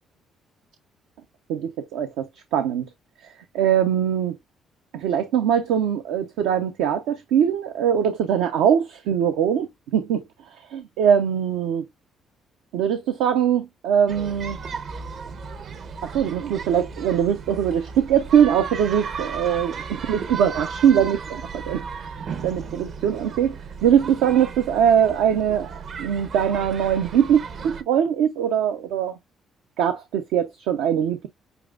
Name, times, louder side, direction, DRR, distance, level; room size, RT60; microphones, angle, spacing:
voice 1, 1.5-2.9 3.5-4.4 4.9-10.2 10.7-11.8 12.7-14.6 16.0-22.0 22.4-29.1 29.8-31.3, right 9 dB, 80° right, 0.6 m, -22 dB
sound 1, 14.1-27.8, right 5 dB, 60° right, 0.9 m, -35 dB
6.8 x 2.6 x 2.3 m
hypercardioid pair, 55°, 0 cm